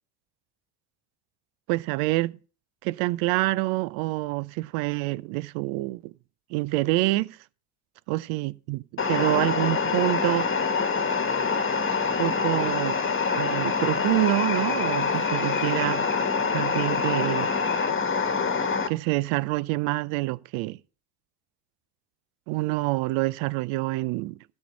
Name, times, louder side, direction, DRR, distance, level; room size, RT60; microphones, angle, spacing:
voice 1, 1.7-2.4 2.8-6.1 6.5-7.4 8.1-10.5 12.2-13.0 13.3-16.1 16.5-17.5 18.9-20.8 22.5-24.4, right 20 dB, 80° right, 0.6 m, -27 dB
sound 1, 9.0-18.9, left 5 dB, 25° left, 1.3 m, -25 dB
12.5 x 4.5 x 6.2 m
supercardioid pair, 80°, 46 cm